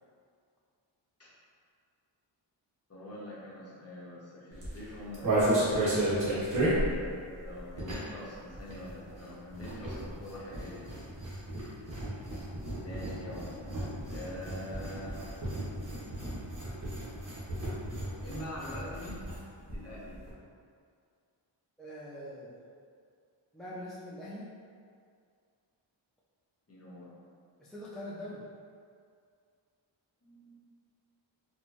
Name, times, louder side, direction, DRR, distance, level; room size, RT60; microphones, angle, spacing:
voice 1, 2.9-6.8 7.1-10.8 12.8-13.6 14.1-15.2 18.2-19.2 19.7-20.2 26.7-27.1 30.2-30.6, left 1 dB, 30° left, -7 dB, 0.9 m, -44 dB
sound 1, 4.5-8.2 8.5-19.4 19.7-19.8 20.0-20.3, right 1 dB, 40° right, 1.1 m, -33 dB
voice 2, 21.8-22.6 23.5-24.5 27.6-28.4, left 1 dB, ahead, -8 dB, 0.3 m, -43 dB
4.2 x 2.2 x 2.9 m, 2.3 s
wide cardioid pair, 115°, 47 cm